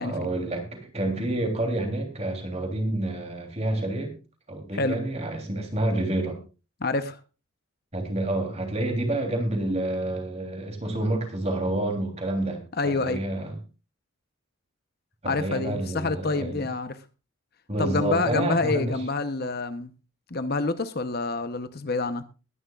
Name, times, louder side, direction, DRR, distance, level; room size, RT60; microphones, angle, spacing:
voice 1, 0.0-4.1 4.5-6.4 7.9-13.5 15.2-16.7 17.7-19.0, right 1 dB, 30° right, 3.2 m, -28 dB
voice 2, 6.8-7.2 12.8-13.2 15.3-17.0 17.8-19.9 20.3-22.2, left 3 dB, 45° left, 0.8 m, -27 dB
21.0 x 11.0 x 2.4 m
head